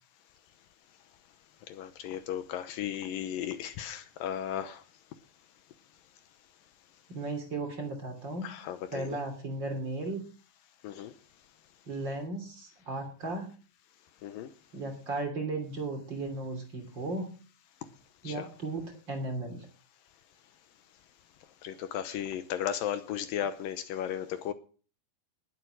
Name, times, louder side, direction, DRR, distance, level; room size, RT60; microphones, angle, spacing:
voice 1, 1.7-4.8 8.4-9.1 10.8-11.1 14.2-14.5 18.3-18.4 21.6-24.5, left 10 dB, 75° left, 2.5 m, -35 dB
voice 2, 7.1-8.4 8.9-10.2 11.9-13.5 14.7-17.3 18.2-19.7, right 2 dB, 30° right, 3.1 m, -35 dB
19.5 x 8.1 x 6.2 m
omnidirectional pair, 4.3 m